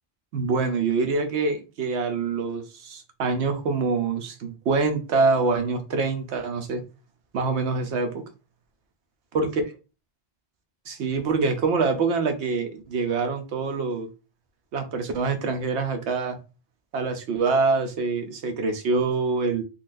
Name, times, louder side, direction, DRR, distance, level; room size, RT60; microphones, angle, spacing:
voice 1, 0.3-6.8 7.3-8.2 9.3-9.6 10.9-14.1 14.7-16.4 16.9-19.6, right 4 dB, 85° right, 0.9 m, -25 dB
3.8 x 2.3 x 2.5 m
omnidirectional pair, 1.1 m